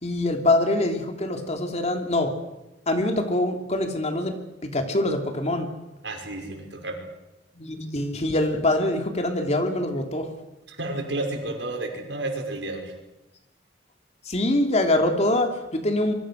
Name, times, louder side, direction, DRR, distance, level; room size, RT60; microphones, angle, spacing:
voice 1, 0.0-2.3 2.9-4.3 4.6-5.7 7.5-10.3 14.2-16.1, left 1 dB, 40° left, 4 dB, 3.0 m, -24 dB
voice 2, 6.0-7.0 10.7-13.0, right 2 dB, 90° right, 3 dB, 5.7 m, -31 dB
27.0 x 23.5 x 6.4 m, 0.99 s
head